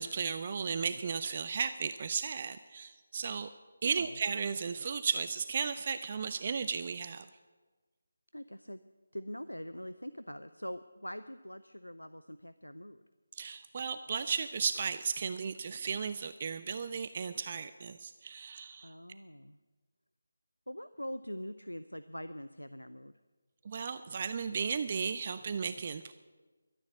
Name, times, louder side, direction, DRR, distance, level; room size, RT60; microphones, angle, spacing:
voice 1, 0.0-3.5 3.8-7.3 13.4-18.9 23.6-26.1, right 6 dB, 35° right, 12 dB, 0.4 m, -35 dB
voice 2, 8.3-8.8 9.1-13.0 18.8-19.6 20.7-23.1, equal, 90° left, 13 dB, 0.5 m, -43 dB
12.5 x 10.5 x 8.3 m, 1.3 s
figure-of-eight pair, 155°, 0 cm